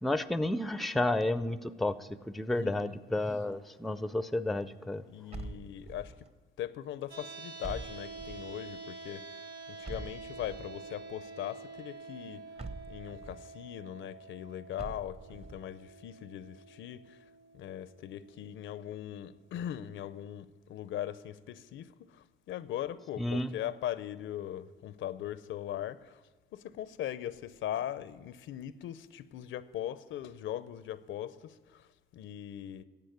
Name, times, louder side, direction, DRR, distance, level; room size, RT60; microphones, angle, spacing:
voice 1, 0.0-5.0 23.2-23.5, left 1 dB, ahead, 0.4 m, -31 dB
voice 2, 2.5-3.0 5.1-6.3 6.6-12.4 12.9-17.2 17.5-26.2 26.5-32.8, left 11 dB, 75° left, 0.6 m, -40 dB
sound 1, 5.3-6.3 7.6-8.6 9.8-10.8 12.6-13.4 14.8-15.6, right 3 dB, 30° right, 1.0 m, -44 dB
sound 2, 7.1-19.1, right 3 dB, 65° right, 2.5 m, -48 dB
10.5 x 7.8 x 9.3 m
cardioid pair, 90°, 20 cm